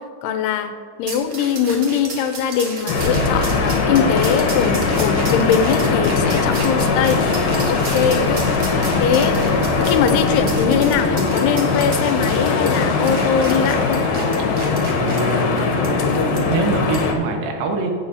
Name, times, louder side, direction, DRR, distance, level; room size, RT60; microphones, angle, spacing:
voice 1, 0.2-0.7 1.0-7.2 7.7-8.7 9.0-9.4 9.9-14.0, left 7 dB, 85° left, 8 dB, 2.7 m, -21 dB
sound 1, 1.1-15.2 15.8-15.9 16.4-16.5 16.9-17.1, right 3 dB, 60° right, 1.2 m, -33 dB
sound 2, 2.9-17.1, left 4 dB, 65° left, 2.6 m, -20 dB
sound 3, 3.0-11.0, left 1 dB, 30° left, 2.4 m, -30 dB
voice 2, 14.9-17.9, right 3 dB, 85° right, 2 dB, 3.3 m, -25 dB
16.0 x 9.0 x 2.8 m, 2.3 s
omnidirectional pair, 4.7 m